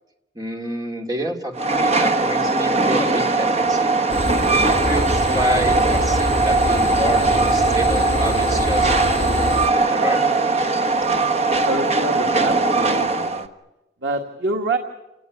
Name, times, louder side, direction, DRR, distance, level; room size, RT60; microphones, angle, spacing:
voice 1, 0.3-3.9 4.5-9.2 9.6-10.2, equal, 20° right, 2 dB, 2.7 m, -28 dB
Train, 1.5-13.5, right 3 dB, 35° right, 1.3 m, -20 dB
sound 1, 4.1-9.7, left 1 dB, 70° left, 2.6 m, -26 dB
voice 2, 11.7-13.5 14.0-14.8, right 2 dB, 90° right, 2 dB, 1.9 m, -26 dB
29.5 x 18.0 x 9.7 m, 0.98 s
head